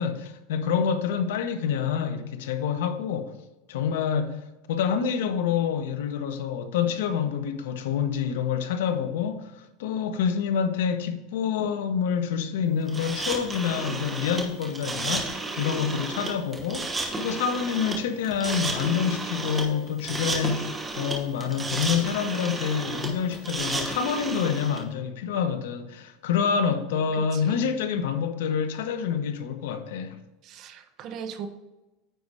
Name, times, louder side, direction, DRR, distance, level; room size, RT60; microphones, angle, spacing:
voice 1, 0.0-3.3 3.7-4.4 4.7-30.2, left 7 dB, 80° left, 0.9 m, -27 dB
sound 1, 12.9-24.8, right 3 dB, 10° right, 1.1 m, -32 dB
voice 2, 26.4-27.7 30.4-31.5, right 7 dB, 30° right, 0.6 m, -40 dB
9.3 x 4.2 x 4.8 m
supercardioid pair, 175°, 0 cm